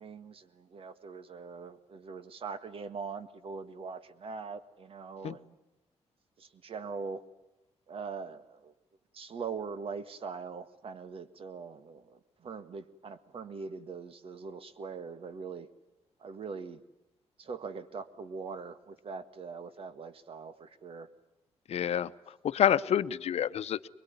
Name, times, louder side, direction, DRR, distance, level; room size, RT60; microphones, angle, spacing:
voice 1, 0.0-5.5 6.4-7.2 7.9-8.7 9.1-15.7 16.2-16.8 17.4-21.1, right 5 dB, 55° right, 12 dB, 1.8 m, -42 dB
voice 2, 21.7-22.1 22.4-23.9, left 10 dB, 65° left, 13 dB, 0.9 m, -28 dB
23.0 x 22.0 x 9.6 m, 0.98 s
cardioid pair, 100°, 11 cm